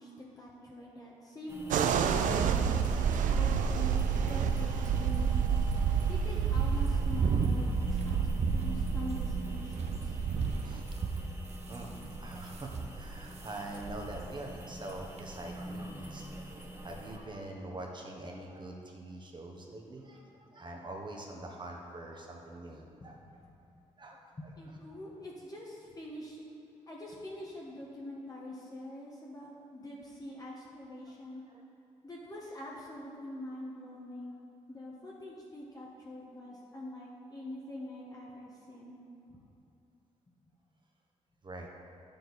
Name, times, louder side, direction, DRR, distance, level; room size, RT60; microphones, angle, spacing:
voice 1, 0.0-2.8 3.3-5.7 6.1-10.2 24.4-26.4 26.9-31.4 32.0-34.3 34.7-39.0, left 1 dB, 30° left, -4 dB, 1.5 m, -44 dB
sound 1, 1.5-17.2, right 1 dB, 20° right, 1.4 m, -45 dB
sound 2, 1.7-10.8, right 7 dB, 90° right, 0.5 m, -30 dB
sound 3, 6.3-13.5 13.8-14.3 14.6-14.7 15.2-15.3, right 4 dB, 60° right, 0.8 m, -34 dB
voice 2, 11.7-23.2 24.0-24.5 31.5-31.6 41.4-41.7, right 1 dB, 35° right, 0 dB, 1.3 m, -44 dB
9.2 x 6.9 x 4.2 m, 2.7 s
cardioid pair, 80°, 13 cm